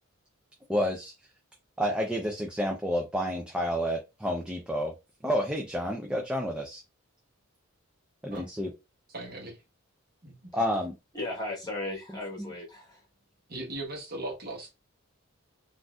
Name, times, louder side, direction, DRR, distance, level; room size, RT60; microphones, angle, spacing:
voice 1, 0.7-1.1 1.8-4.9 5.2-6.8 8.2-8.7 10.5-10.9 12.4-12.5, equal, 5° right, 0.4 m, -29 dB
voice 2, 9.1-9.6 10.2-10.4 13.5-14.7, right 2 dB, 45° right, 1.2 m, -38 dB
voice 3, 11.1-13.0, left 2 dB, 20° left, 1.2 m, -36 dB
3.7 x 2.5 x 2.3 m
head